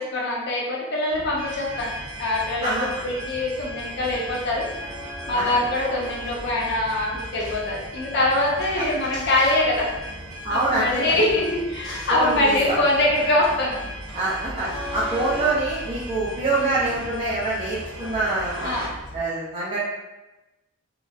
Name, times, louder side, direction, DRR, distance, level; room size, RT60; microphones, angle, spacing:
voice 1, 0.0-1.9 2.2-4.7 5.3-9.9 10.5-13.8 16.5-16.9 18.6-18.9, left 1 dB, 50° left, -3 dB, 0.6 m, -23 dB
sound 1, 1.1-19.2, equal, ahead, 0.9 m, -40 dB
sound 2, 1.4-18.9, equal, 70° right, 0.8 m, -37 dB
voice 2, 2.6-3.0 5.3-5.6 8.8-8.9 10.4-11.0 12.1-12.8 14.1-18.7 19.1-19.8, right 2 dB, 25° right, -9 dB, 0.5 m, -25 dB
2.7 x 2.0 x 2.3 m, 1.1 s
head